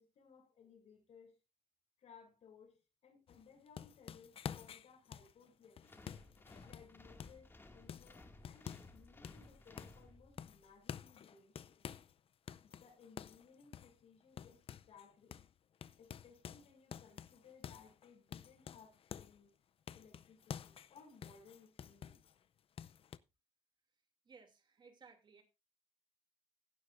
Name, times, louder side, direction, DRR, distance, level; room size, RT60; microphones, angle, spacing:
voice 1, 0.0-1.4 2.0-5.9 6.6-11.8 12.6-15.4 16.0-19.5 19.9-22.2, left 6 dB, 75° left, 7.1 m, -62 dB
sound 1, 3.3-7.5 7.9-9.0 9.2-10.1 10.4-12.1 12.5-15.1 15.3-15.5 15.8-19.4 19.9-22.3 22.8-23.2, left 8 dB, 55° left, 0.5 m, -50 dB
sound 2, 5.8-10.6, left 2 dB, 20° left, 2.1 m, -59 dB
voice 2, 24.2-25.4, right 5 dB, 45° right, 2.7 m, -60 dB
16.0 x 11.5 x 2.6 m
cardioid pair, 125°, 11 cm